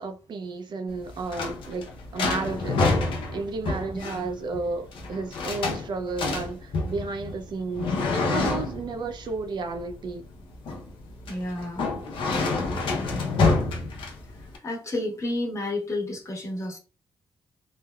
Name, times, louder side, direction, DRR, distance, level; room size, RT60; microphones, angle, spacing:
voice 1, 0.0-1.9 2.1-2.8 3.3-7.9 8.3-10.2, right 4 dB, 60° right, 0.5 m, -32 dB
sound 1, 0.9-14.6, left 3 dB, 80° left, 0.7 m, -28 dB
voice 2, 11.3-11.9 13.2-13.5 14.4-16.8, left 1 dB, 35° left, 1.2 m, -31 dB
3.2 x 2.1 x 2.3 m
cardioid pair, 70°, 9 cm